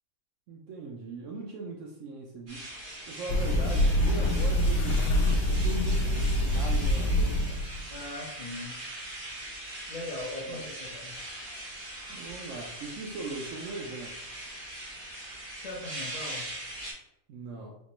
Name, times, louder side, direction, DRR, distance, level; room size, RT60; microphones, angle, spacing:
voice 1, 0.5-2.7 3.1-7.6 10.5-10.6 12.1-14.2 17.3-17.8, right 3 dB, 70° right, 0 dB, 0.8 m, -39 dB
sound 1, 2.5-16.9, right 1 dB, 40° right, 1.1 m, -41 dB
sound 2, 3.3-7.9, left 1 dB, 85° left, 1.1 m, -25 dB
voice 2, 7.9-8.8 9.9-11.2 15.6-16.5, left 2 dB, 40° left, -5 dB, 0.5 m, -39 dB
4.2 x 2.9 x 3.0 m, 0.88 s
omnidirectional pair, 1.5 m